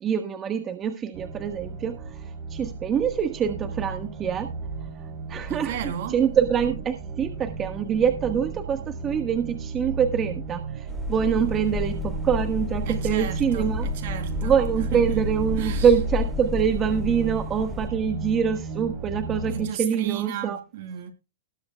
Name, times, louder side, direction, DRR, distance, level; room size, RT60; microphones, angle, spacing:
voice 1, 0.0-2.2 2.5-4.5 5.3-5.8 6.1-13.9 14.4-20.6, right 7 dB, 25° right, 1.4 m, -25 dB
sound 1, 1.1-19.7, right 4 dB, 45° right, 3.3 m, -34 dB
voice 2, 5.5-6.2 12.8-14.5 14.9-15.2 15.6-15.9 19.5-21.1, right 10 dB, 65° right, 3.0 m, -34 dB
sound 2, 10.9-17.9, left 5 dB, 15° left, 2.4 m, -32 dB
19.5 x 7.8 x 2.3 m
hypercardioid pair, 125°, 0 cm